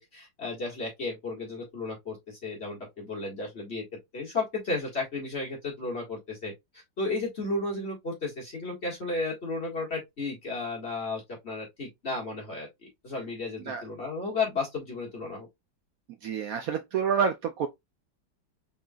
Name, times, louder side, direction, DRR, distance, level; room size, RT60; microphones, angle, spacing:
voice 1, 0.0-3.8 4.1-15.5, left 3 dB, 35° left, 1.9 m, -33 dB
voice 2, 16.2-17.7, right 7 dB, 80° right, 0.8 m, -28 dB
4.3 x 3.8 x 2.3 m
omnidirectional pair, 2.1 m